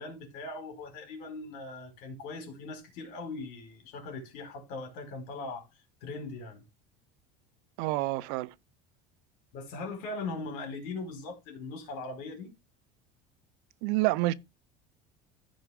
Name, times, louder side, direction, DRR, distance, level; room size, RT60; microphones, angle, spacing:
voice 1, 0.0-5.6 6.0-6.6 9.5-12.5, left 3 dB, 65° left, 4.5 m, -40 dB
voice 2, 7.8-8.5 13.8-14.3, right 19 dB, 70° right, 0.6 m, -28 dB
14.5 x 5.2 x 3.5 m
cardioid pair, 150°, 17 cm